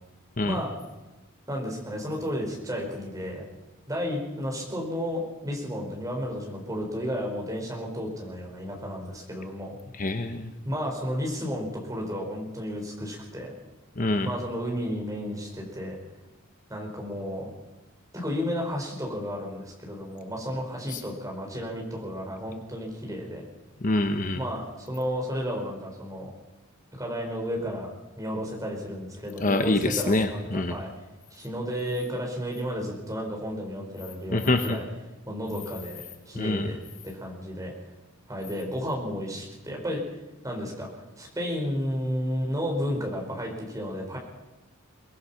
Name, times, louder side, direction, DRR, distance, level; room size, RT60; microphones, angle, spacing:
voice 1, 1.5-3.5 3.9-9.7 10.6-13.5 14.2-16.0 16.7-17.5 18.1-23.4 24.3-26.3 27.0-27.9 28.2-30.9 31.3-34.8 35.3-37.7 38.3-40.0 40.4-44.2, equal, 15° right, 0 dB, 5.0 m, -32 dB
voice 2, 10.0-10.5 14.0-14.3 20.9-21.0 23.8-24.4 29.4-30.8 34.3-34.8 36.4-36.7, left 2 dB, 35° left, 7 dB, 1.0 m, -25 dB
23.5 x 19.0 x 5.8 m, 1.1 s
head